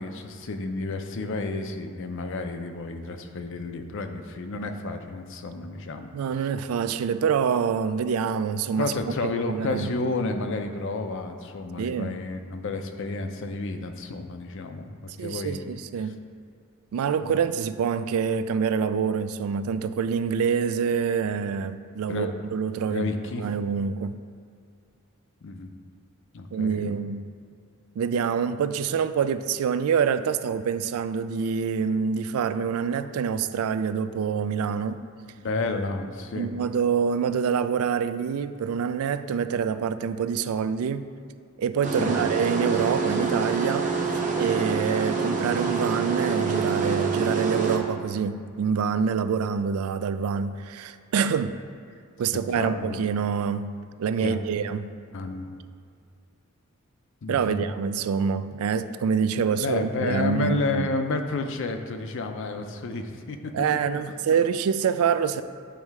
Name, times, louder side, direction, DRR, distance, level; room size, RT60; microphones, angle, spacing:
voice 1, 0.0-6.1 8.8-15.6 16.0-16.1 17.2-17.4 22.1-22.3 22.9-23.5 25.4-25.7 26.3-26.9 35.4-36.5 42.0-42.2 52.6-53.0 54.2-54.4 55.1-55.5 57.2-57.6 59.6-63.5, left 3 dB, 60° left, 6 dB, 0.5 m, -31 dB
voice 2, 6.1-8.9 9.4-9.9 11.8-12.2 15.2-16.2 16.9-24.2 26.5-27.2 28.0-35.0 36.3-41.1 41.6-43.9 44.4-51.6 52.2-54.9 57.3-61.0 63.5-65.4, right 6 dB, 90° right, 12 dB, 0.3 m, -26 dB
sound 1, 41.8-47.8, right 4 dB, 35° right, 0.7 m, -26 dB
9.1 x 3.2 x 4.6 m, 2.4 s
head